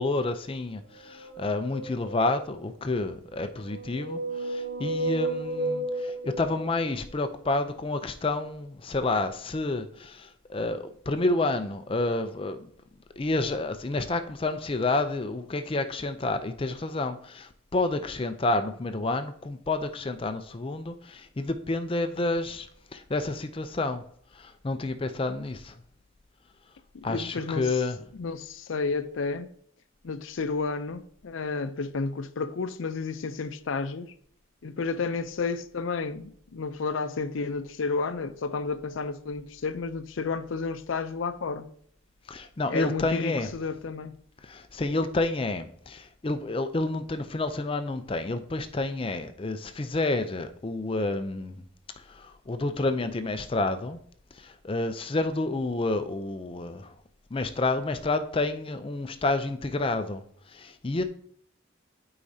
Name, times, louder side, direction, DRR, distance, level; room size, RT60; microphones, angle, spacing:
voice 1, 0.0-12.7 13.2-24.0 24.3-25.8 27.0-28.0 42.3-43.5 44.4-51.6 52.0-54.0 54.3-56.9 57.3-60.2 60.5-61.0, left 2 dB, 25° left, 0.4 m, -29 dB
sound 1, 0.9-2.5 3.4-7.3, right 2 dB, 55° right, 0.9 m, -33 dB
voice 2, 26.9-27.8 28.1-29.5 30.0-34.1 34.6-41.7 42.7-44.2, left 4 dB, 75° left, 0.5 m, -31 dB
11.5 x 4.8 x 2.7 m
head